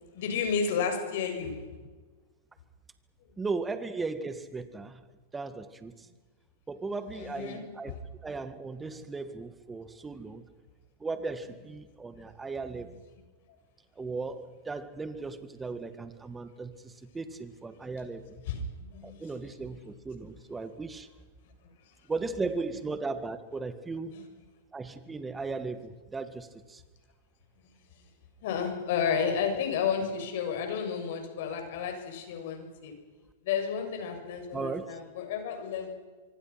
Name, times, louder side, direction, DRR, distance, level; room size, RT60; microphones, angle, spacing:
voice 1, 0.0-1.6 7.1-7.6 10.0-10.1 12.8-12.9 18.5-19.2 24.1-24.3 27.6-27.8 28.4-32.9 33.4-35.9, left 6 dB, 65° left, 5 dB, 7.2 m, -32 dB
voice 2, 3.4-5.0 5.3-6.1 6.7-7.9 8.2-10.5 11.0-12.9 14.0-18.4 19.0-21.1 22.1-24.4 24.7-26.8 34.5-35.0, right 3 dB, 10° right, 11 dB, 1.9 m, -37 dB
25.0 x 24.5 x 6.0 m, 1.3 s
hypercardioid pair, 130°, 0 cm